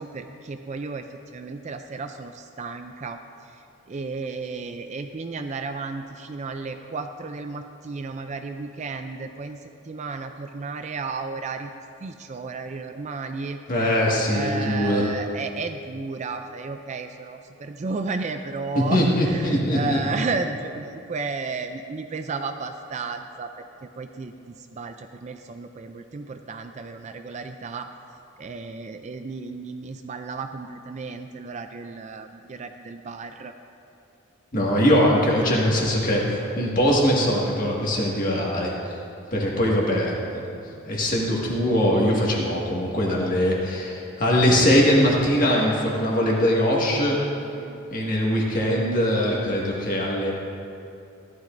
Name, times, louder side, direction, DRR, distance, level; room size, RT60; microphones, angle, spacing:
voice 1, 0.0-13.6 14.3-23.6 24.0-27.9 28.4-33.5 47.6-48.0, right 4 dB, 30° right, 7 dB, 0.3 m, -33 dB
voice 2, 13.7-15.0 18.9-20.0 34.5-38.7 39.3-40.4 40.8-47.2 47.9-50.3, equal, 40° left, -4 dB, 1.8 m, -21 dB
14.5 x 12.0 x 2.6 m, 2.7 s
head